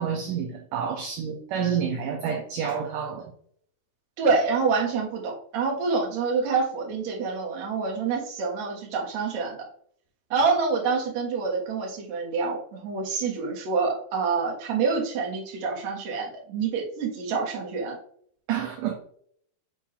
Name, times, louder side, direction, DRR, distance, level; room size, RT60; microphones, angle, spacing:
voice 1, 0.0-3.3 18.5-18.9, right 7 dB, 75° right, 2 dB, 2.1 m, -29 dB
voice 2, 4.2-9.6 10.3-18.0, right 4 dB, 55° right, -1 dB, 2.3 m, -27 dB
6.7 x 2.7 x 5.7 m, 0.63 s
omnidirectional pair, 4.4 m